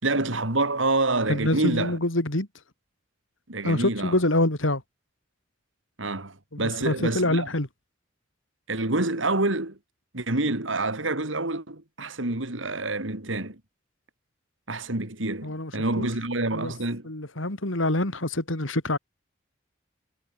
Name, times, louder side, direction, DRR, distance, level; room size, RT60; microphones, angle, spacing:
voice 1, 0.0-2.0 3.5-4.2 6.0-7.5 8.7-9.8 10.1-13.6 14.7-17.1, right 2 dB, 80° right, 3.1 m, -27 dB
voice 2, 1.3-2.5 3.6-4.8 6.5-7.7 15.4-16.1 16.5-16.7 17.0-19.0, left 1 dB, 85° left, 3.5 m, -26 dB
head